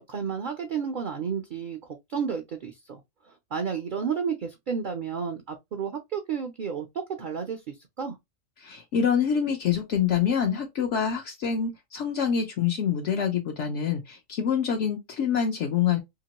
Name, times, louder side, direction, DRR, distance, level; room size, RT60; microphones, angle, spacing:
voice 1, 0.0-1.8 2.1-3.0 3.3-8.2, right 6 dB, 55° right, 0.5 m, -32 dB
voice 2, 8.6-16.0, left 7 dB, 70° left, 0.9 m, -26 dB
2.9 x 2.9 x 2.8 m
omnidirectional pair, 1.4 m